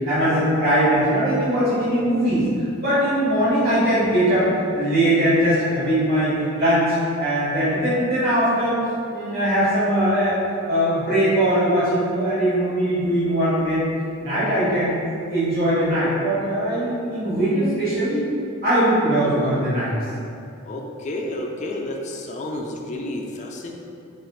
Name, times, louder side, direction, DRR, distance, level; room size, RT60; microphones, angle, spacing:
voice 1, 0.1-2.4 2.8-4.5 4.7-8.8 9.1-10.4 10.7-13.8 14.2-14.9 15.3-18.2 18.6-19.9, right 1 dB, 45° right, -12 dB, 1.5 m, -20 dB
voice 2, 20.7-23.7, left 1 dB, 35° left, 1 dB, 0.4 m, -30 dB
4.4 x 4.2 x 2.3 m, 2.6 s
head